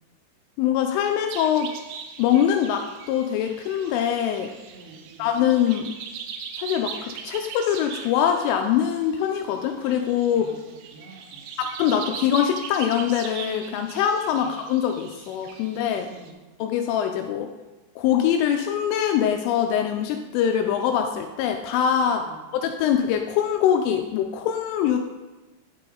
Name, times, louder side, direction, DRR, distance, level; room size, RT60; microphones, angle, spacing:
voice 1, 0.6-1.7 2.2-4.5 5.2-5.9 6.6-10.5 11.6-16.1 16.6-17.5 18.0-22.2 22.6-25.0, left 9 dB, 85° left, 5 dB, 2.9 m, -23 dB
sound 1, 1.3-16.3, right 6 dB, 85° right, 2.4 m, -40 dB
voice 2, 4.7-5.3 10.3-11.5 14.3-14.5 16.0-16.3 22.1-22.4, right 3 dB, 60° right, -8 dB, 4.9 m, -48 dB
10.5 x 5.9 x 3.8 m, 1.1 s
omnidirectional pair, 5.8 m